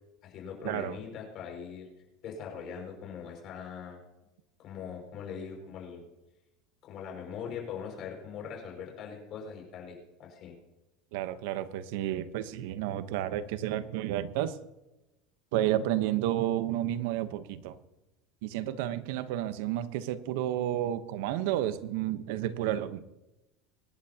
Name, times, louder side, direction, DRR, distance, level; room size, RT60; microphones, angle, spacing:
voice 1, 0.2-1.9 2.2-4.0 4.6-6.0 6.8-10.5, left 6 dB, 45° left, 1 dB, 5.8 m, -41 dB
voice 2, 11.1-14.5 15.5-17.8 18.4-23.1, right 12 dB, 75° right, 12 dB, 1.0 m, -31 dB
25.0 x 11.0 x 2.9 m, 0.97 s
supercardioid pair, 130°, 0 cm